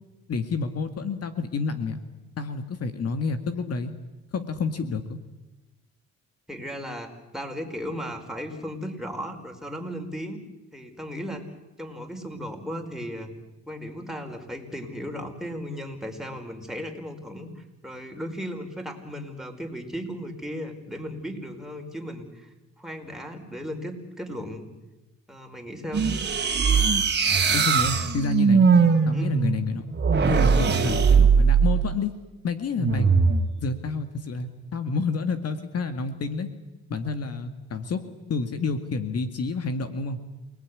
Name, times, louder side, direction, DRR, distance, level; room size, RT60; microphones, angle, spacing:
voice 1, 0.3-2.0 2.4-3.9 4.3-5.2 27.5-28.7 29.1-29.8 30.3-32.1 32.4-33.1 33.6-36.5 36.9-40.2, left 4 dB, 55° left, 8 dB, 2.0 m, -29 dB
voice 2, 6.5-10.4 10.7-11.4 11.8-13.3 13.7-24.7 25.3-26.1 29.1-29.4 30.5-30.8, equal, ahead, 3 dB, 5.0 m, -36 dB
sound 1, 25.9-31.9 32.8-33.4, right 5 dB, 35° right, 2.8 m, -20 dB
28.5 x 19.0 x 9.8 m, 1.1 s
cardioid pair, 90°, 30 cm